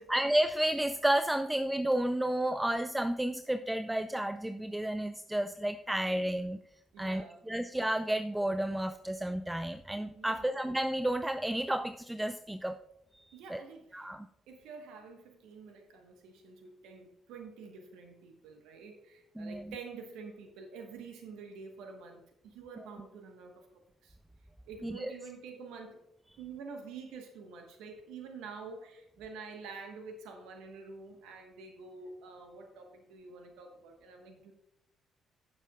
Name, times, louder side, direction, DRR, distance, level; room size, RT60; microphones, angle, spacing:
voice 1, 0.1-6.6 7.0-12.8 13.1-13.2 13.5-13.6 13.9-14.3 19.4-19.7 24.8-25.1, right 1 dB, 10° right, 10 dB, 0.5 m, -31 dB
voice 2, 6.9-7.4 10.1-10.5 13.3-14.1 14.5-24.2 24.7-26.0 26.4-34.5, right 5 dB, 75° right, 4 dB, 1.3 m, -48 dB
15.5 x 7.2 x 2.4 m, 0.81 s
hypercardioid pair, 50°, 0 cm